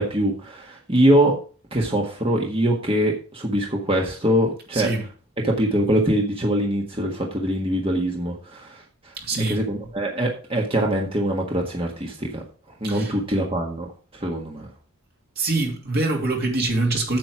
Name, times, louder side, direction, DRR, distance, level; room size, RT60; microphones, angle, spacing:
voice 1, 0.0-1.4 1.7-4.9 5.4-9.1 9.5-12.4 12.8-14.7, right 1 dB, 25° right, 1.6 m, -23 dB
voice 2, 4.7-5.0 9.1-9.6 12.8-13.1 15.4-17.2, right 2 dB, 45° right, 2.9 m, -24 dB
9.0 x 7.7 x 4.8 m
head